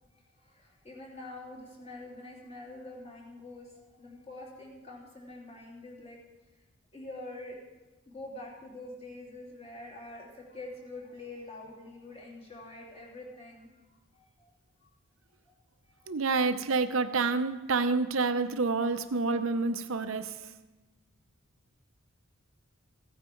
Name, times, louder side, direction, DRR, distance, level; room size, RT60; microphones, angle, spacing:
voice 1, 0.4-6.2 6.9-7.6 8.1-13.7 14.1-14.5 14.8-14.9 15.5-15.6 15.8-16.0, left 2 dB, 30° left, -4 dB, 2.9 m, -45 dB
voice 2, 16.1-20.5, right 4 dB, 85° right, 10 dB, 0.7 m, -28 dB
16.0 x 9.2 x 4.5 m, 1.1 s
head